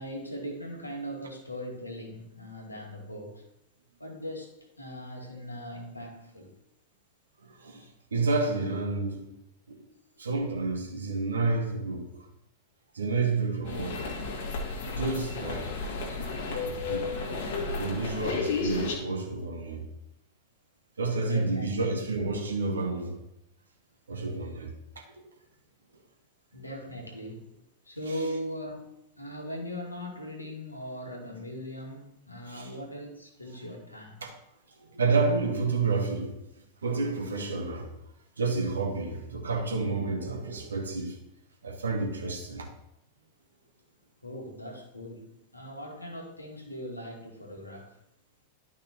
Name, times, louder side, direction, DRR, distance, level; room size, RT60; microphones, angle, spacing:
voice 1, 0.0-3.4 4.0-6.6 21.2-21.8 26.5-27.5 27.8-28.9 29.2-34.2 44.2-48.0, equal, 85° left, 2.0 m, -39 dB
voice 2, 7.4-9.3 9.7-9.8 10.2-12.3 12.9-14.1 14.9-16.2 16.6-17.1 17.6-19.9 21.0-23.2 24.1-25.2 32.5-32.7 34.2-34.3 34.7-36.4 36.8-38.0 38.4-41.2 41.6-42.7, right 3 dB, 70° right, 1.7 m, -30 dB
sound 1, 13.7-19.0, left 4 dB, 55° left, 2.2 m, -33 dB
12.0 x 5.5 x 3.1 m
figure-of-eight pair, 90°, 0 cm